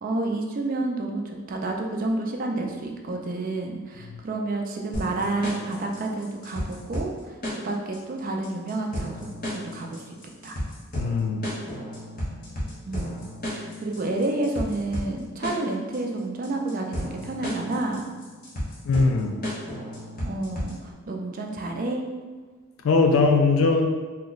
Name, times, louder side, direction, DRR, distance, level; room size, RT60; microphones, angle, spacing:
voice 1, 0.0-10.1 10.4-10.5 12.9-18.1 20.2-22.0, right 2 dB, 40° right, 2 dB, 0.3 m, -30 dB
sound 1, 4.9-20.9, equal, 40° left, 0.8 m, -34 dB
voice 2, 11.0-11.5 18.8-19.4 22.8-23.9, left 4 dB, 70° left, 4 dB, 0.4 m, -20 dB
2.9 x 2.1 x 3.8 m, 1.4 s
head